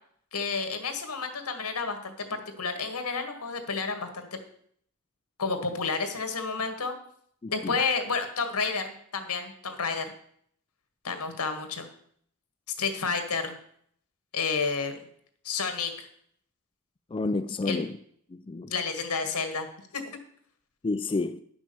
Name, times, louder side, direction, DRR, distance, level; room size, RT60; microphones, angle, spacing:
voice 1, 0.3-4.3 5.4-6.9 7.5-10.1 11.0-11.9 12.8-13.6 14.3-15.0 15.4-16.1 17.6-17.8 18.7-19.7 19.9-20.2, left 4 dB, 85° left, 1.8 m, -30 dB
voice 2, 7.4-7.8 17.1-17.9 18.3-18.7 20.8-21.4, left 3 dB, 25° left, 0.4 m, -30 dB
11.0 x 6.2 x 7.0 m
head